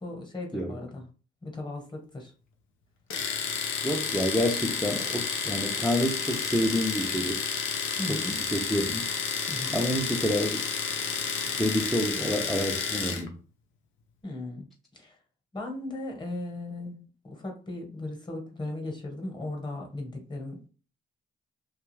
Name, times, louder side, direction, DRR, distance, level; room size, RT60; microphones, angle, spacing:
voice 1, 0.0-1.0 1.4-2.3 8.0-8.4 9.5-9.8 14.2-14.7 14.9-15.1 15.5-20.7, left 2 dB, 20° left, 2 dB, 1.0 m, -37 dB
Domestic sounds home sounds, 3.1-13.3, left 6 dB, 80° left, 0.6 m, -31 dB
voice 2, 3.8-7.4 8.1-9.0 9.7-10.6 11.6-13.3, equal, ahead, -2 dB, 0.5 m, -28 dB
2.3 x 2.3 x 3.1 m, 0.37 s
cardioid pair, 90°, 20 cm